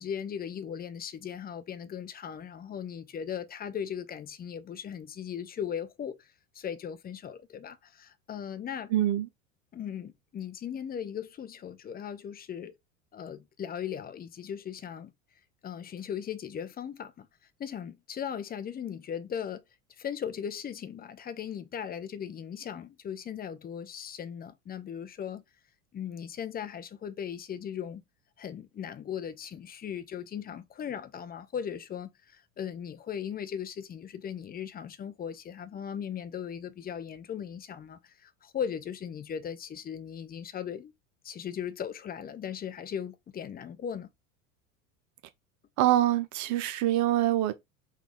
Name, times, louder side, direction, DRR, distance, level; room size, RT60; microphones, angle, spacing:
voice 1, 0.0-8.9 9.7-12.8 13.1-15.1 15.6-17.3 17.6-19.6 20.0-25.4 25.9-28.0 28.4-40.9 41.2-44.1, left 8 dB, 25° left, 0.5 m, -38 dB
voice 2, 8.9-9.3 45.8-47.5, right 13 dB, 50° right, 0.6 m, -25 dB
4.0 x 2.4 x 3.5 m
hypercardioid pair, 80°, 39 cm